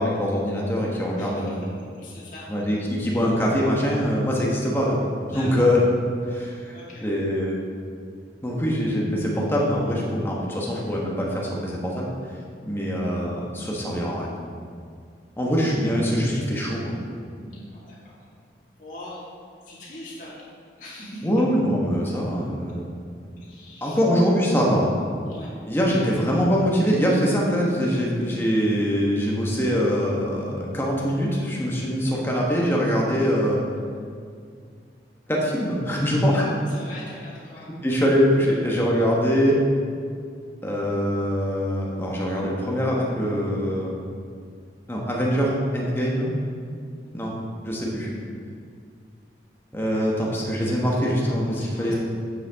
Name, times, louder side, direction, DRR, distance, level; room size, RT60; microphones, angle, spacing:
voice 1, 0.0-1.6 2.5-5.0 5.3-5.8 6.3-6.7 7.0-7.6 8.4-12.1 12.6-14.4 15.4-17.0 21.2-22.8 23.8-24.9 25.7-33.6 35.3-36.5 37.8-39.5 40.6-43.9 44.9-46.3 47.1-47.3 47.6-48.1 49.7-51.9, equal, 15° left, -3 dB, 1.2 m, -23 dB
voice 2, 1.2-2.5 3.0-3.1 5.3-5.5 6.7-7.0 17.4-18.0 18.8-19.2 19.7-20.3 20.8-21.3 23.4-24.0 25.3-25.5 36.7-37.7 46.9-47.2 51.6-52.0, left 1 dB, 45° left, -8 dB, 2.2 m, -41 dB
9.2 x 7.8 x 3.6 m, 2.2 s
head